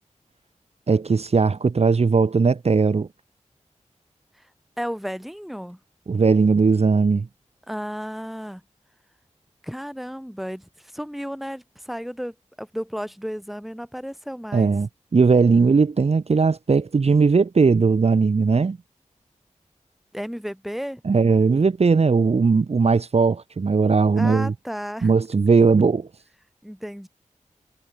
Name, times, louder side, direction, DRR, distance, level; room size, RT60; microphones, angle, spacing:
voice 1, 0.9-3.1 6.1-7.3 14.5-18.8 21.0-24.5 25.0-26.1, right 4 dB, 55° right, 1.1 m, -18 dB
voice 2, 4.8-5.8 7.7-8.6 9.6-14.7 20.1-21.0 24.2-25.1 26.6-27.1, equal, ahead, 7.9 m, -33 dB
wide cardioid pair, 90°, 13 cm